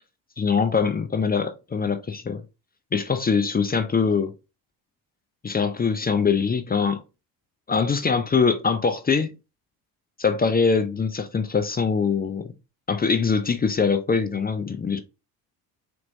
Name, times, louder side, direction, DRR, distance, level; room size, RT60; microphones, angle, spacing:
voice 1, 0.4-2.4 2.9-4.3 5.4-7.0 7.7-9.3 10.2-12.5 12.9-15.0, left 5 dB, 20° left, 0.6 m, -23 dB
4.2 x 3.0 x 2.6 m
hypercardioid pair, 60°, 48 cm